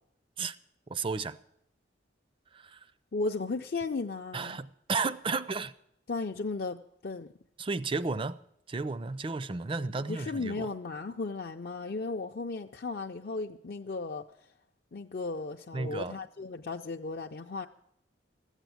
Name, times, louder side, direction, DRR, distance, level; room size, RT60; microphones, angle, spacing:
voice 1, 0.9-1.4 2.5-2.8 4.3-5.7 7.6-8.4 8.7-10.7 15.7-16.2, right 4 dB, 30° right, 0.4 m, -33 dB
voice 2, 3.1-4.6 6.1-7.3 10.1-14.2 14.9-17.7, left 3 dB, 55° left, 0.5 m, -35 dB
14.5 x 8.2 x 9.1 m
head